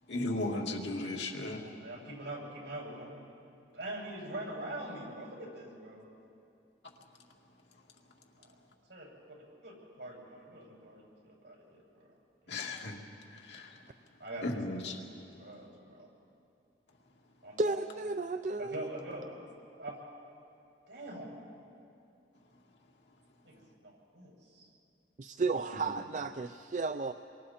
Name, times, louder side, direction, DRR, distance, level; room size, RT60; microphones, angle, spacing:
voice 1, 0.1-1.7 12.5-13.0 13.3-13.8 14.4-15.0, left 2 dB, 80° left, 0 dB, 2.3 m, -36 dB
voice 2, 1.6-3.2 3.7-6.1 8.4-8.5 8.9-9.1 9.6-12.1 12.4-12.6 14.2-14.6 15.4-16.1 17.4-17.8 18.6-19.3 19.8-20.0 20.9-21.4 23.4-24.7, right 1 dB, 75° right, -2 dB, 6.6 m, -44 dB
voice 3, 17.6-18.9 25.2-27.1, right 3 dB, 40° right, 9 dB, 0.4 m, -33 dB
28.5 x 23.5 x 4.3 m, 2.6 s
head